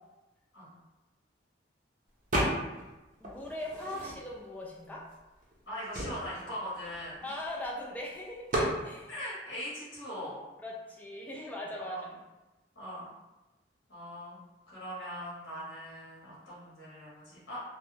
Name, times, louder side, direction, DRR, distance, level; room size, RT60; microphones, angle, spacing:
sound 1, 2.3-2.9 3.2-4.5 5.1-5.2 5.4-7.7 8.5-8.8, right 1 dB, 45° right, 0.5 m, -33 dB
voice 1, 3.2-5.0 7.2-8.5 8.8-9.1 10.6-12.0, left 1 dB, 10° left, -3 dB, 0.3 m, -40 dB
voice 2, 5.7-7.3 9.1-10.4 11.8-12.0 12.7-13.1 13.9-14.4 14.7-17.6, equal, 65° left, -8 dB, 1.0 m, -41 dB
2.3 x 2.0 x 3.1 m, 1.1 s
head